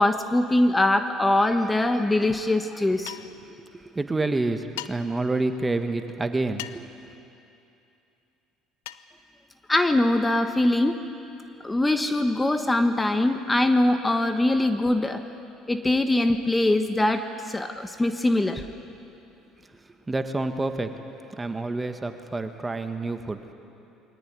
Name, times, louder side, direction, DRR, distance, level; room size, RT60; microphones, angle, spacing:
voice 1, 0.0-3.2 9.7-11.0 11.6-15.2 15.7-18.6, left 1 dB, 15° left, 7 dB, 1.3 m, -22 dB
sound 1, 3.1-3.4 4.8-4.9 6.6-6.9 8.8-9.1, left 15 dB, 85° left, 0.7 m, -37 dB
voice 2, 3.5-6.8 20.1-21.0 21.4-23.4, right 2 dB, 20° right, 7 dB, 1.6 m, -28 dB
23.0 x 18.0 x 9.6 m, 2.7 s
supercardioid pair, 85°, 0 cm